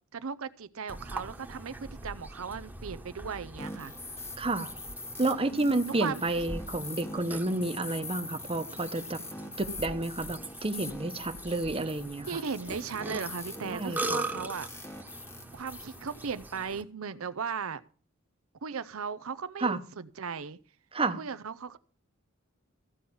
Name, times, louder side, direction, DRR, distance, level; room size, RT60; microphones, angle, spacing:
voice 1, 0.1-3.9 5.5-6.5 12.3-14.9 15.5-17.8 18.6-20.6 21.2-21.8, right 6 dB, 80° right, 0.7 m, -37 dB
Burping eructation, 0.9-16.8, right 2 dB, 10° right, 1.2 m, -42 dB
sound 1, 3.6-16.6, left 2 dB, 10° left, 1.0 m, -43 dB
voice 2, 4.4-4.8 5.2-9.2 9.6-12.4 13.7-14.2 19.6-19.8 20.9-21.2, right 2 dB, 25° right, 1.0 m, -30 dB
15.0 x 5.6 x 8.5 m
head